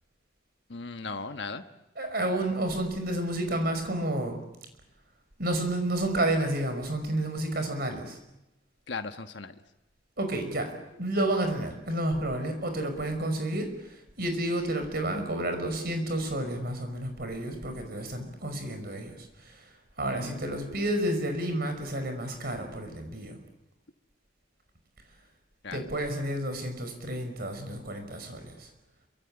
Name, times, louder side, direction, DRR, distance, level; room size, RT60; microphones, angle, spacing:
voice 1, 0.7-1.6 8.9-9.5 20.1-20.8 25.6-25.8, left 4 dB, 70° left, 6 dB, 1.3 m, -38 dB
voice 2, 2.0-4.4 5.4-8.2 10.2-19.7 20.0-23.4 25.7-28.7, right 1 dB, 55° right, 7 dB, 5.5 m, -30 dB
27.5 x 24.5 x 8.8 m, 0.90 s
head